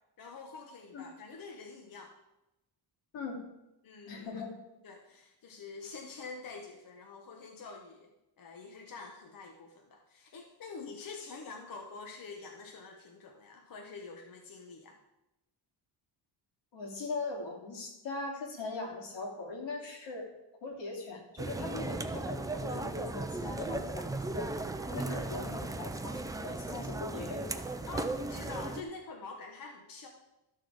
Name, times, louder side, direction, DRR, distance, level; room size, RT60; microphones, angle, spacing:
voice 1, 0.2-2.2 3.8-4.3 4.8-8.1 8.4-15.0 24.9-25.4 27.9-30.1, left 4 dB, 50° left, 2 dB, 1.1 m, -46 dB
voice 2, 4.1-4.6 16.7-20.3 20.6-24.5 24.8-27.7, left 3 dB, 85° left, 0 dB, 2.8 m, -40 dB
sound 1, 21.4-28.8, right 2 dB, 10° right, 0.3 m, -36 dB
13.0 x 6.4 x 4.8 m, 0.93 s
wide cardioid pair, 165°, 43 cm